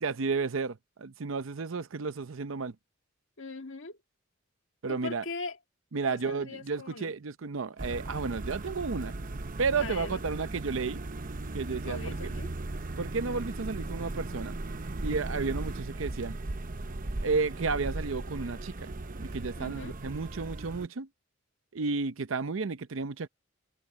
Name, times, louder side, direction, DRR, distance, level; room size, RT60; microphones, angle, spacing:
voice 1, 0.0-2.7 4.8-5.2 5.9-9.1 9.6-11.0 11.5-12.0 13.0-14.5 15.0-16.4 17.2-18.9 19.2-21.1 21.7-23.3, right 4 dB, 70° right, 0.7 m, -32 dB
voice 2, 3.4-4.0 4.9-5.6 6.0-7.1 9.8-10.2 11.8-12.5 19.6-20.0, left 3 dB, 70° left, 1.8 m, -40 dB
sound 1, 7.8-20.9, right 2 dB, 45° right, 0.8 m, -37 dB
head